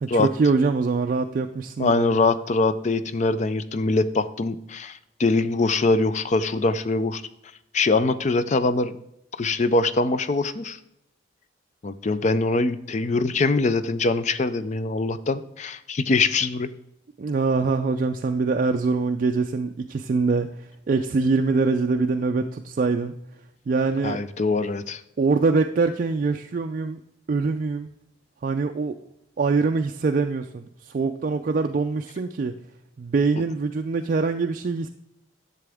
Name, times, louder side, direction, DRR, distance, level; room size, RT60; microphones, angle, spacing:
voice 1, 0.0-2.2 17.2-23.2 23.7-24.2 25.2-27.0 27.3-27.9 28.4-29.0 29.4-32.6 33.0-34.9, right 4 dB, 45° right, 6 dB, 0.3 m, -24 dB
voice 2, 1.8-7.2 7.7-8.9 9.4-10.8 11.8-16.7 24.0-25.0, left 3 dB, 35° left, 13 dB, 0.4 m, -23 dB
11.0 x 6.9 x 3.5 m, 0.82 s
head